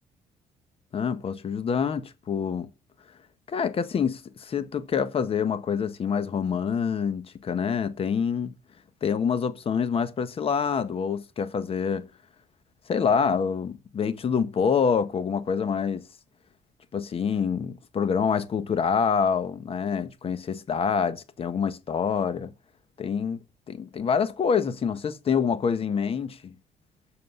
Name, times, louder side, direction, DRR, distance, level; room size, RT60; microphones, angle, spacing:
voice 1, 0.9-2.7 3.5-8.5 9.0-12.1 12.9-16.1 16.9-22.5 23.0-23.4 23.7-26.6, left 6 dB, 45° left, 1.3 m, -26 dB
7.8 x 6.5 x 6.6 m
cardioid pair, 110°, 14 cm